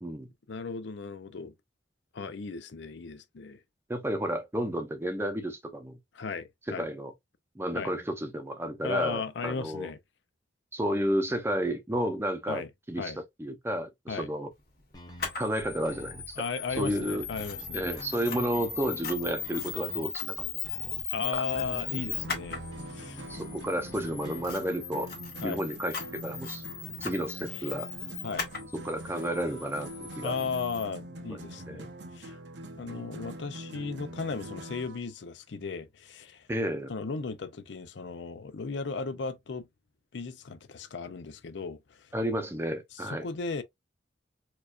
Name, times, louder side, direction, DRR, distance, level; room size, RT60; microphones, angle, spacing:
voice 1, 0.5-1.5 2.1-3.6 6.1-6.9 7.7-7.9 8.8-10.0 12.5-12.7 13.0-13.2 14.1-14.3 16.4-17.9 21.1-22.6 22.9-23.2 25.4-25.6 27.5-27.7 28.2-28.5 30.2-32.4 32.8-36.5 36.9-39.7 40.1-42.1 42.9-43.6, left 4 dB, 75° left, 0.5 m, -36 dB
voice 2, 3.9-6.0 6.7-7.1 7.6-9.9 10.7-14.5 15.4-16.4 16.8-17.3 17.7-20.5 23.3-25.1 25.4-26.6 27.0-27.9 28.7-30.3 31.3-31.4 31.7-31.9 36.5-36.9 42.1-43.3, equal, 15° right, 0.6 m, -31 dB
sound 1, 14.9-24.5, left 1 dB, 20° left, 1.1 m, -48 dB
Camera, 15.2-30.9, left 7 dB, 60° left, 1.5 m, -39 dB
sound 2, 21.9-35.0, right 1 dB, 75° right, 0.7 m, -44 dB
4.5 x 2.5 x 2.4 m
head